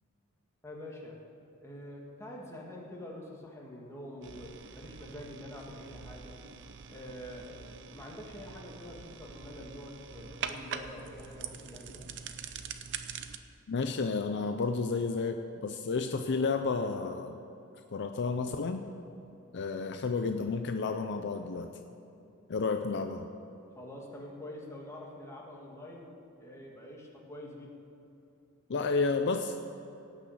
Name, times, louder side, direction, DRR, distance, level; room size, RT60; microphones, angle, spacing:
voice 1, 0.6-1.2 1.6-6.4 6.9-12.1 23.8-27.7, left 1 dB, 15° left, -2 dB, 2.0 m, -46 dB
sound 1, 4.2-13.4, right 6 dB, 55° right, 0.7 m, -44 dB
voice 2, 13.7-17.4 17.9-18.8 19.5-21.7 22.5-23.3 28.7-29.6, left 4 dB, 55° left, 6 dB, 0.5 m, -31 dB
17.5 x 6.2 x 7.3 m, 2.9 s
head